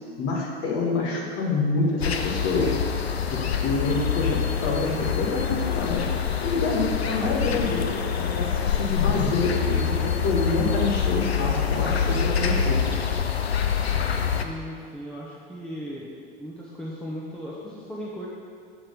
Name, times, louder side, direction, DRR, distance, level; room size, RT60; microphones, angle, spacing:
voice 1, 0.2-2.8 3.3-6.1 6.4-12.8, left 3 dB, 50° left, -1 dB, 1.6 m, -27 dB
sound 1, 2.0-14.4, left 7 dB, 85° left, 0.6 m, -26 dB
voice 2, 14.4-16.1 16.4-18.3, equal, ahead, -6 dB, 1.0 m, -37 dB
7.7 x 4.4 x 5.2 m, 2.1 s
figure-of-eight pair, 80°, 31 cm